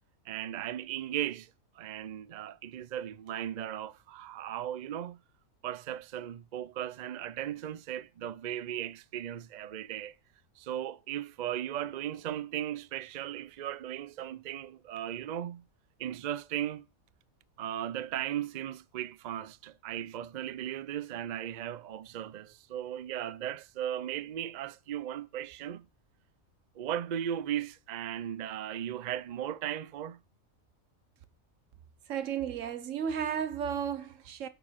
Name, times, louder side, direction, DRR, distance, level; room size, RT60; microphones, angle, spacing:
voice 1, 0.3-1.5 1.8-5.2 5.6-10.1 10.6-15.6 16.0-16.9 17.6-25.9 26.8-30.2, right 11 dB, 85° right, 0.4 m, -37 dB
voice 2, 32.1-34.5, right 8 dB, 65° right, 1.2 m, -33 dB
6.8 x 6.6 x 7.2 m
omnidirectional pair, 1.5 m